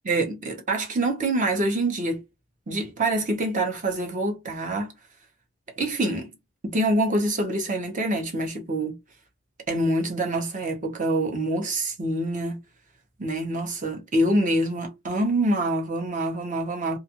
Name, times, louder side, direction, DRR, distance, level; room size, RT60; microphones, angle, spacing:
voice 1, 0.0-2.2 2.7-4.9 5.8-6.3 6.6-9.0 9.7-12.6 13.2-17.0, right 1 dB, 40° right, 0.9 m, -25 dB
2.5 x 2.4 x 2.7 m
head